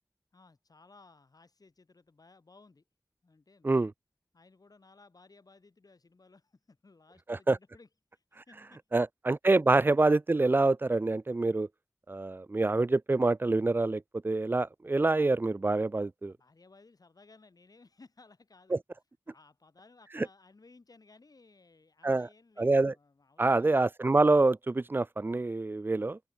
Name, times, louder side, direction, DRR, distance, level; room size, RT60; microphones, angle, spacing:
voice 1, 0.3-2.8 3.2-3.7 4.3-9.0 16.3-18.8 19.3-23.8, left 3 dB, 70° left, 6.8 m, -59 dB
voice 2, 8.9-11.7 12.1-16.3 18.7-18.8 20.1-20.3 22.0-22.3 22.6-22.9 23.4-26.2, right 2 dB, 30° right, 0.4 m, -26 dB
open air
wide cardioid pair, 75°, 7 cm